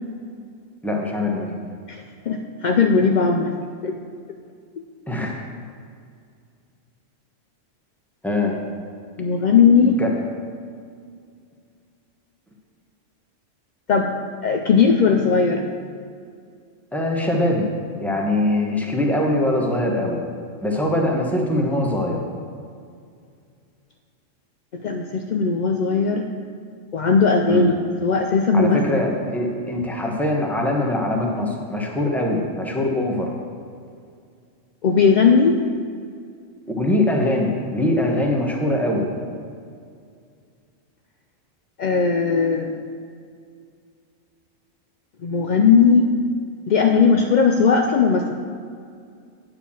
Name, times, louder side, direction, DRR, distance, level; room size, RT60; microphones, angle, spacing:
voice 1, 0.8-1.6 5.1-5.4 8.2-8.6 9.8-10.1 16.9-17.7 18.0-20.2 20.6-22.2 27.5-27.7 28.5-33.3 36.7-39.1, left 1 dB, ahead, -1 dB, 1.0 m, -22 dB
voice 2, 1.9-3.5 3.8-4.0 9.2-10.0 13.9-14.1 14.4-15.7 24.7-26.3 26.9-27.7 28.0-28.8 34.8-35.6 41.8-42.7 45.2-46.1 46.7-48.3, left 5 dB, 70° left, 3 dB, 0.4 m, -18 dB
9.1 x 4.9 x 7.1 m, 2.3 s
omnidirectional pair, 1.3 m